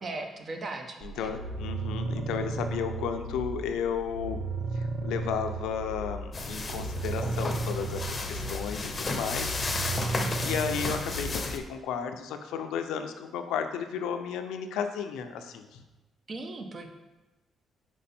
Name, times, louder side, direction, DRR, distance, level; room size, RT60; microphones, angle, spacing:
voice 1, 0.0-1.3 10.0-10.4 16.3-16.9, right 2 dB, 40° right, 4 dB, 0.9 m, -38 dB
voice 2, 1.0-4.4 4.8-9.6 10.1-10.2 10.4-15.8, left 7 dB, 90° left, 7 dB, 0.5 m, -33 dB
sound 1, 1.0-11.7, right 3 dB, 60° right, 0.5 m, -35 dB
sound 2, 6.3-11.6, left 3 dB, 30° left, 0.7 m, -33 dB
5.4 x 4.6 x 4.3 m, 1.1 s
cardioid pair, 90°, 0 cm